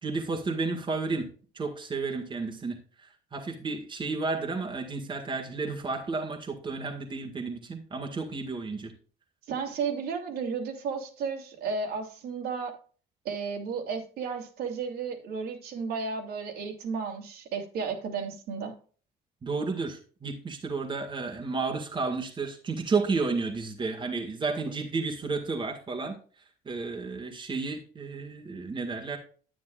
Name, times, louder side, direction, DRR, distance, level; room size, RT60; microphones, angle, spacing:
voice 1, 0.0-8.9 19.4-26.2 26.6-29.2, right 4 dB, 30° right, 2 dB, 1.8 m, -32 dB
voice 2, 9.5-12.8 13.2-18.7, right 5 dB, 70° right, 2 dB, 2.6 m, -33 dB
10.0 x 9.0 x 2.4 m, 0.41 s
cardioid pair, 110°, 17 cm